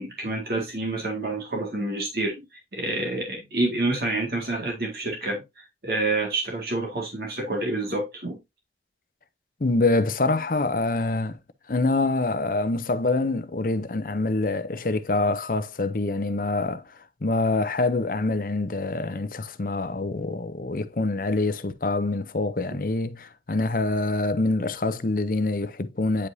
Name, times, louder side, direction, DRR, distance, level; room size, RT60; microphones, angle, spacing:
voice 1, 0.0-2.4 2.7-8.4, right 2 dB, 60° right, 2.1 m, -28 dB
voice 2, 9.6-11.4 11.7-16.9 17.2-26.3, left 2 dB, 50° left, 0.6 m, -25 dB
9.6 x 5.1 x 2.7 m
head